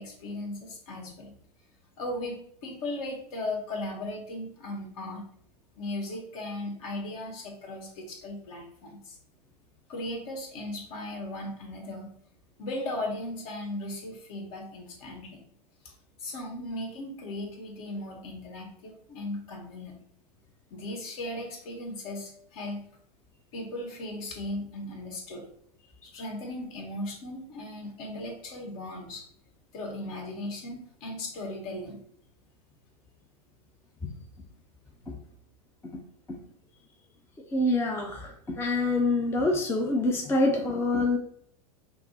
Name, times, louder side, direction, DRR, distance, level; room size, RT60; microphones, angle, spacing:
voice 1, 0.0-1.3 2.0-5.3 5.8-9.2 9.9-12.1 12.6-15.4 15.8-15.9 16.2-20.0 20.7-22.8 23.5-25.4 26.0-29.3 29.7-32.0, left 1 dB, 60° left, 1 dB, 1.6 m, -37 dB
voice 2, 37.5-41.2, left 2 dB, 10° left, 1 dB, 0.6 m, -26 dB
5.7 x 2.0 x 4.0 m, 0.67 s
hypercardioid pair, 110°, 20 cm